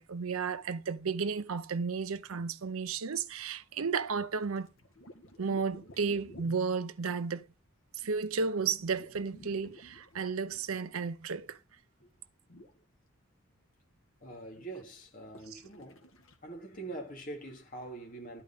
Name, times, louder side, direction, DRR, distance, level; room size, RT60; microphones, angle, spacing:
voice 1, 0.0-4.7 5.4-7.5 7.9-11.6 15.5-15.6, right 5 dB, 90° right, 0.6 m, -33 dB
sound 1, 4.4-6.8 8.0-11.5 12.0-12.1 12.5-12.8 14.5-14.8 15.3-16.4, equal, 75° left, 1.8 m, -54 dB
voice 2, 14.2-16.0 16.4-18.4, right 2 dB, 40° left, 2.6 m, -44 dB
11.5 x 5.3 x 5.5 m
head